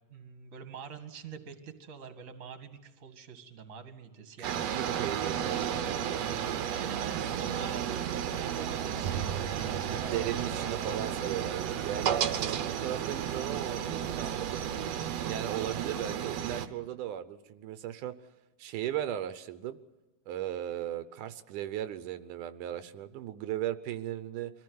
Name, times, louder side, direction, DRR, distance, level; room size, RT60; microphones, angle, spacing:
voice 1, 0.1-4.9 6.7-10.4, right 7 dB, 30° right, 7 dB, 1.9 m, -45 dB
sound 1, 4.4-16.7, right 9 dB, 65° right, 1.9 m, -33 dB
voice 2, 4.4-6.4 9.9-14.6 15.3-18.2 18.6-19.8 20.3-24.5, right 12 dB, 85° right, 12 dB, 2.4 m, -37 dB
24.0 x 15.5 x 9.5 m, 1.1 s
omnidirectional pair, 3.6 m